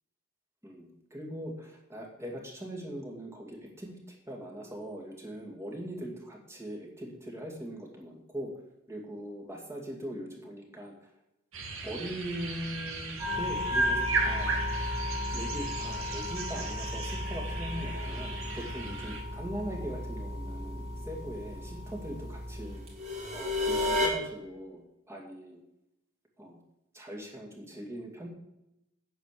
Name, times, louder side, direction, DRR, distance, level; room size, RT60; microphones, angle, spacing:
voice 1, 0.6-8.5 8.9-10.9 11.8-14.6 15.3-22.8 23.3-25.6 26.4-26.6 26.9-28.3, equal, 15° right, -1 dB, 2.3 m, -41 dB
sound 1, 11.5-19.2, right 3 dB, 65° right, 2.5 m, -35 dB
sound 2, 13.2-24.1, left 2 dB, 30° right, 3.3 m, -34 dB
9.2 x 7.8 x 6.7 m, 0.87 s
head